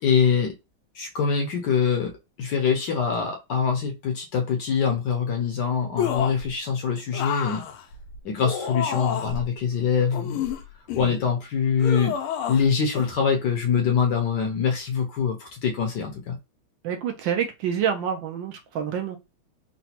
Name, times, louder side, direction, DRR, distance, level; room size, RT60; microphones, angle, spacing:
voice 1, 0.0-0.5 0.9-2.1 2.4-7.6 8.2-10.4 10.9-12.1 12.5-16.4, left 6 dB, 70° left, 1.1 m, -24 dB
sound 1, 6.0-6.5 7.1-9.5 10.1-11.2 11.8-12.7 12.9-13.1, left 8 dB, 90° left, 1.5 m, -29 dB
voice 2, 16.8-19.2, right 8 dB, 75° right, 1.2 m, -27 dB
3.9 x 2.2 x 2.8 m
omnidirectional pair, 2.3 m